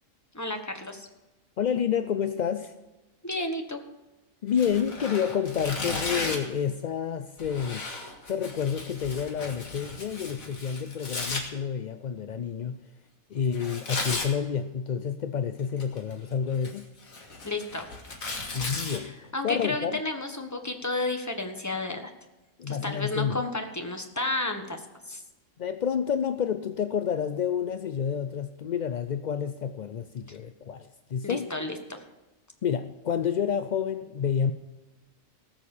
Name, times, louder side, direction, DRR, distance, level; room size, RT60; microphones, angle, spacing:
voice 1, 0.3-1.1 3.2-3.8 17.4-17.9 19.0-22.1 22.7-25.2 31.2-32.0, left 2 dB, 15° left, 5 dB, 1.2 m, -32 dB
voice 2, 1.6-2.7 4.4-7.9 8.3-12.8 13.3-16.9 18.5-20.0 22.6-23.4 25.6-31.5 32.6-34.5, left 7 dB, 65° left, 10 dB, 0.4 m, -29 dB
Tearing, 4.5-6.5 7.4-11.4 13.5-14.3 15.6-16.1 16.5-19.0, left 3 dB, 85° left, 2.4 m, -35 dB
18.5 x 6.4 x 7.2 m, 1.1 s
omnidirectional pair, 1.4 m